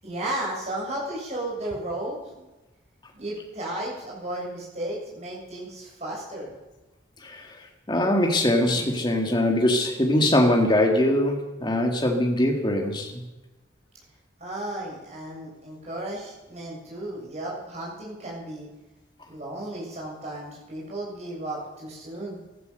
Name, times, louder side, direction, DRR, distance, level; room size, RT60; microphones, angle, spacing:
voice 1, 0.0-2.4 3.1-6.5 14.4-18.7 19.3-22.4, right 1 dB, 35° right, -4 dB, 7.3 m, -34 dB
voice 2, 7.2-7.6 7.9-13.1, left 1 dB, 25° left, 2 dB, 2.0 m, -22 dB
16.0 x 13.5 x 6.7 m, 1.1 s
head